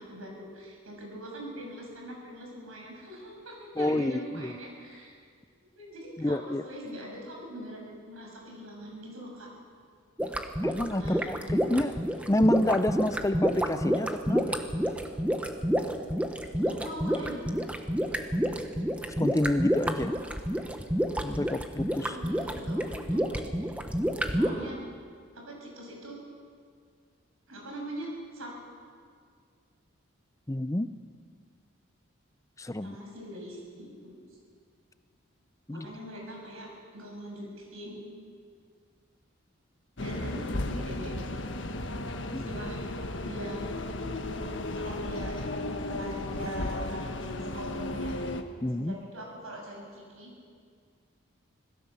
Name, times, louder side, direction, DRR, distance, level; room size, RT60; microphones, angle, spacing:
voice 1, 0.0-5.2 5.7-9.5 11.0-11.3 16.7-17.4 21.8-23.2 24.3-24.8 25.3-26.2 27.5-28.5 32.8-34.2 35.7-38.1 40.0-41.3 42.4-42.8 43.2-43.6 44.8-48.2 48.7-50.3, right 1 dB, 90° right, 0 dB, 6.9 m, -42 dB
voice 2, 3.8-4.5 6.2-6.6 10.6-11.9 12.3-14.6 19.2-20.1 21.2-22.1 30.5-30.9 32.6-33.0 35.7-35.9 42.3-42.6 46.4-46.5 48.6-49.0, left 1 dB, 15° left, 12 dB, 0.5 m, -28 dB
sound 1, 10.2-24.5, equal, 5° right, 1.1 m, -29 dB
sound 2, 40.0-48.4, left 2 dB, 60° left, 1.4 m, -34 dB
26.0 x 17.5 x 7.2 m, 2.1 s
head